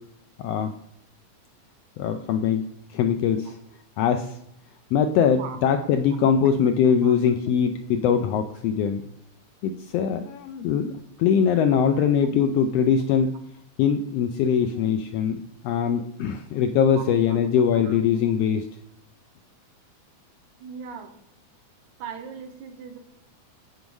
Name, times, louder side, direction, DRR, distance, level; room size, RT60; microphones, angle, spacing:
voice 1, 0.4-0.7 2.0-2.6 2.9-3.6 4.0-4.4 4.9-9.0 9.6-13.4 13.8-18.7, left 7 dB, 80° left, 7 dB, 1.4 m, -22 dB
voice 2, 17.0-17.4 17.7-18.0 20.6-21.2 22.0-23.0, right 7 dB, 85° right, 6 dB, 2.5 m, -39 dB
9.0 x 5.2 x 4.7 m, 0.78 s
omnidirectional pair, 3.3 m